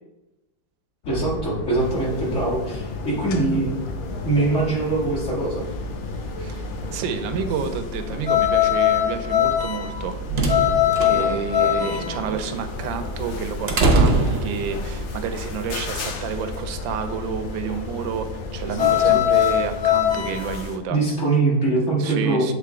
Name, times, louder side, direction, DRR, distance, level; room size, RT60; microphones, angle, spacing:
sound 1, 1.0-20.6, left 2 dB, 90° left, 1.5 m, -34 dB
voice 1, 1.1-3.8 4.2-5.6 11.1-12.3 18.6-19.2 20.9-22.5, right 2 dB, 40° left, -6 dB, 2.1 m, -23 dB
sound 2, 1.8-20.7, left 12 dB, 65° left, 0.7 m, -24 dB
voice 2, 6.9-10.2 11.0-21.0 22.0-22.5, right 6 dB, 85° right, 8 dB, 1.3 m, -30 dB
sound 3, 9.8-15.0, right 3 dB, 50° right, 0.8 m, -23 dB
7.6 x 3.6 x 3.6 m, 1.0 s
omnidirectional pair, 2.0 m